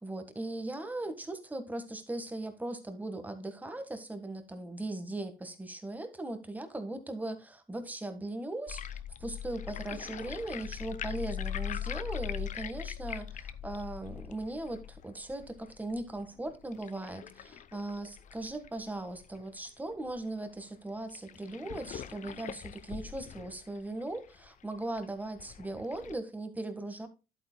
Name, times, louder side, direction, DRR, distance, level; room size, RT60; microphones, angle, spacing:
voice 1, 0.0-27.1, right 2 dB, 10° right, 1.5 m, -39 dB
sound 1, 8.7-19.7 20.1-20.2 20.4-20.5 21.1-26.1, left 10 dB, 45° left, 0.7 m, -41 dB
11.0 x 8.7 x 2.2 m
cardioid pair, 110°, 17 cm